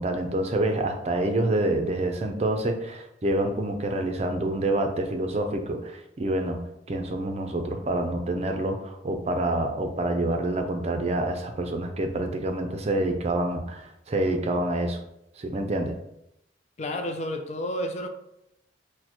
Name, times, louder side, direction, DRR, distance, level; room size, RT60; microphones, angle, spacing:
voice 1, 0.0-6.6 6.9-15.0 15.4-15.9, right 1 dB, 35° right, 0.5 m, -27 dB
voice 2, 16.8-18.1, left 1 dB, 40° left, 0.4 m, -30 dB
6.3 x 2.1 x 2.9 m
head